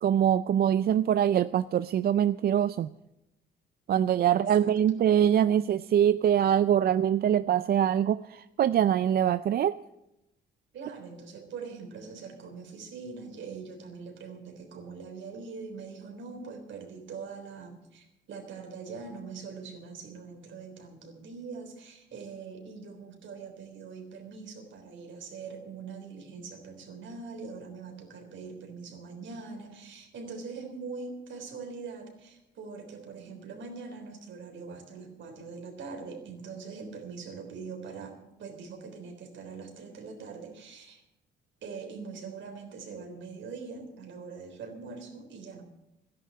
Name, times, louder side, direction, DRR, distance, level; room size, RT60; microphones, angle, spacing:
voice 1, 0.0-2.9 3.9-9.8, right 10 dB, 50° right, 15 dB, 0.4 m, -24 dB
voice 2, 4.3-4.7 10.7-41.0 41.6-45.6, right 5 dB, 70° right, 4 dB, 3.6 m, -42 dB
13.0 x 10.5 x 8.5 m, 0.90 s
cardioid pair, 90°, 20 cm